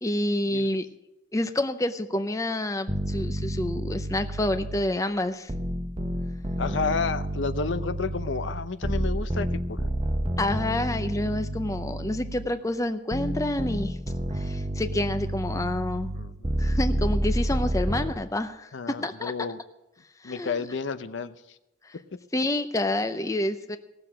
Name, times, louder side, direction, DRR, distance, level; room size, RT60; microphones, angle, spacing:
voice 1, 0.0-0.9 1.3-5.5 10.4-14.0 14.3-16.1 16.6-18.7 19.0-19.3 20.2-20.6 22.3-23.8, left 1 dB, 15° left, 9 dB, 0.6 m, -28 dB
sound 1, 2.9-5.0 5.5-12.6 13.1-18.1, right 1 dB, 25° right, 0.9 m, -30 dB
voice 2, 6.6-9.9 16.2-16.7 18.7-19.6 20.2-21.3, left 4 dB, 65° left, 10 dB, 0.6 m, -31 dB
17.5 x 6.9 x 7.4 m, 0.93 s
head